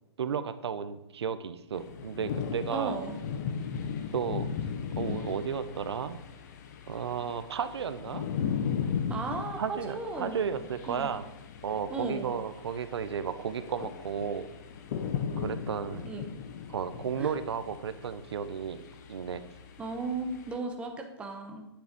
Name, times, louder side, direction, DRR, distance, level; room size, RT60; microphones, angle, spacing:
voice 1, 0.2-3.0 4.1-4.5 5.0-6.2 6.9-8.3 9.6-11.3 11.6-14.5 15.4-16.1 16.7-18.8 19.1-19.4, right 7 dB, 70° right, 11 dB, 1.0 m, -33 dB
sound 1, 1.7-20.6, left 7 dB, 40° left, 1.0 m, -37 dB
voice 2, 2.7-3.2 9.1-10.4 10.9-11.1 11.9-12.3 16.1-16.3 17.2-17.4 19.8-21.7, right 3 dB, 10° right, 3 dB, 1.0 m, -35 dB
9.9 x 6.9 x 5.3 m, 0.90 s
hypercardioid pair, 160°, 14 cm